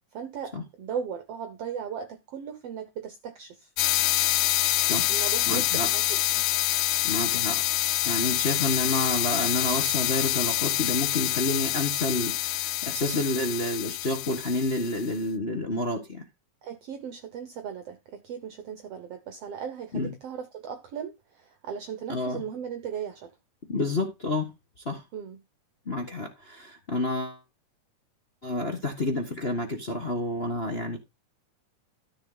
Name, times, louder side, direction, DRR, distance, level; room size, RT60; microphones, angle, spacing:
voice 1, 0.1-3.7 5.1-6.5 16.6-23.3 25.1-25.4, right 7 dB, 65° right, 1.7 m, -37 dB
sound 1, 3.8-15.1, left 14 dB, 85° left, 2.2 m, -26 dB
voice 2, 5.5-5.9 7.0-7.6 8.0-16.3 19.9-20.1 22.1-22.4 23.7-24.5 24.8-25.0 25.8-27.4 28.4-31.0, left 2 dB, 40° left, 0.9 m, -29 dB
13.0 x 6.2 x 4.0 m
omnidirectional pair, 3.7 m